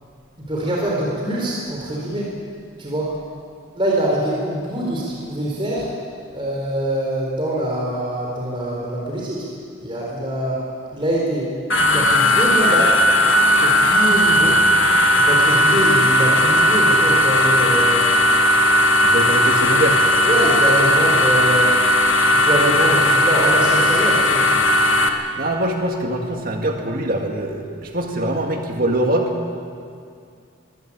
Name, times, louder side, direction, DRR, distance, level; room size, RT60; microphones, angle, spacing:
voice 1, 0.4-2.3 2.8-3.2 3.7-5.9 6.3-9.5 9.8-10.7 10.9-13.0 13.6-14.6 15.1-18.1 20.2-21.8 22.3-24.5, right 1 dB, 25° right, -3 dB, 4.1 m, -24 dB
sound 1, 11.7-25.1, left 1 dB, 80° left, 1.7 m, -16 dB
voice 2, 19.0-20.0 25.4-29.3, right 1 dB, 45° right, 2 dB, 2.0 m, -23 dB
22.5 x 16.5 x 8.7 m, 2.3 s
head